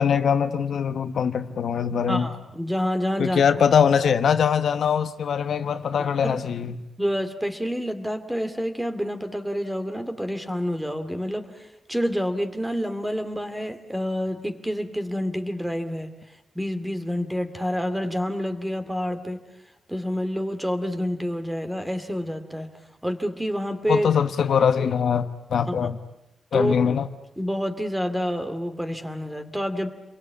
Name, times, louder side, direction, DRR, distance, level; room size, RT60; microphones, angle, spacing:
voice 1, 0.0-2.3 3.2-6.8 23.9-26.0 26.5-27.1, left 7 dB, 70° left, 1.1 m, -22 dB
voice 2, 2.1-3.4 6.0-6.4 7.0-16.1 16.5-19.4 19.9-22.7 23.0-24.1 25.7-25.9 26.5-26.9 27.4-29.9, equal, 5° right, 2.4 m, -28 dB
29.0 x 22.5 x 8.4 m
wide cardioid pair, 120°, 0 cm